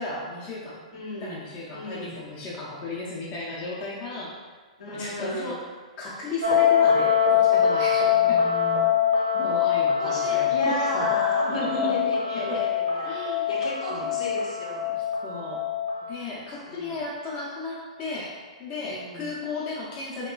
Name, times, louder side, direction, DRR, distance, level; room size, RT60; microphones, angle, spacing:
voice 1, 0.0-0.8 1.2-4.3 4.9-5.6 6.0-8.5 9.4-11.2 11.6-11.9 12.5-12.6 13.0-13.5 13.9-14.1 14.9-15.6 16.1-20.3, left 3 dB, 35° left, -6 dB, 0.5 m, -35 dB
voice 2, 0.9-1.4 1.7-2.2 4.8-5.6 8.0-8.9 9.2-9.5 10.0-14.9 16.6-17.0 18.8-19.3, equal, 75° left, -4 dB, 0.8 m, -34 dB
sound 1, 6.4-16.1, left 8 dB, 90° right, 0.6 m, -23 dB
3.1 x 2.2 x 2.2 m, 1.4 s
hypercardioid pair, 120°, 4 cm